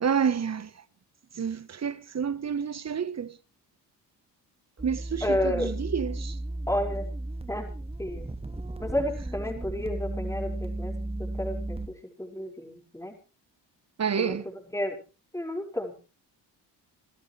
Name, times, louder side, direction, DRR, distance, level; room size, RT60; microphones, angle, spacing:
voice 1, 0.0-0.7 1.3-3.4 4.8-6.4 14.0-14.5, right 7 dB, 35° right, 1.2 m, -29 dB
sound 1, 4.8-11.9, right 1 dB, 15° right, 1.7 m, -34 dB
voice 2, 5.2-5.7 6.7-7.1 7.5-7.7 8.0-8.3 8.8-10.9 11.2-13.1 14.2-14.4 14.7-15.0 15.3-16.0, left 1 dB, 5° left, 5.5 m, -31 dB
28.5 x 12.0 x 3.4 m
cardioid pair, 75°, 43 cm